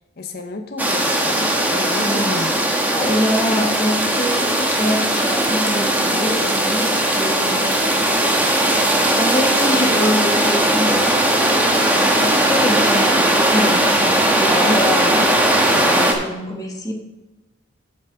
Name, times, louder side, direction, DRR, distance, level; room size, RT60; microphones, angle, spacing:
voice 1, 0.2-2.5 14.6-14.9 15.2-15.3, left 2 dB, 55° left, 4 dB, 0.7 m, -29 dB
sound 1, 0.8-16.1, right 1 dB, 10° right, 1.0 m, -18 dB
voice 2, 2.0-2.6 2.9-7.7 8.9-11.1 11.9-15.2 15.7-16.9, equal, 20° left, 2 dB, 1.2 m, -25 dB
8.5 x 4.6 x 6.3 m, 1.0 s
head